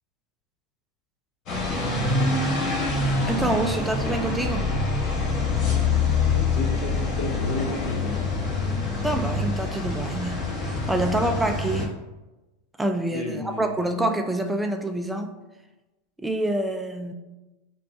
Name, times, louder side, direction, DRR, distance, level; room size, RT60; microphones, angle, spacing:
sound 1, 1.5-11.8, left 3 dB, 45° left, 1.3 m, -25 dB
voice 1, 3.2-4.8 9.0-11.9 12.8-15.3 16.2-17.1, right 1 dB, 5° right, 5 dB, 0.3 m, -27 dB
voice 2, 6.3-8.3 13.1-13.8, left 3 dB, 70° left, 3 dB, 0.8 m, -33 dB
6.5 x 2.3 x 2.7 m, 1.1 s
supercardioid pair, 130°, 0 cm